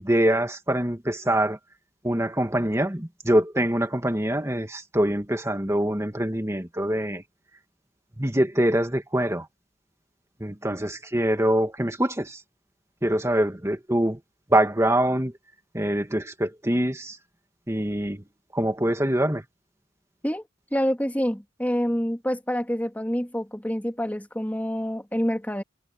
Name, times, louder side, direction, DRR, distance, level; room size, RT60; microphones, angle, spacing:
voice 1, 0.0-1.6 2.0-7.2 8.2-9.5 10.4-12.4 13.0-14.2 14.5-15.3 15.7-17.2 17.7-18.2 18.5-19.4, right 1 dB, 15° right, 2.1 m, -24 dB
voice 2, 20.7-25.6, equal, 10° left, 3.0 m, -27 dB
head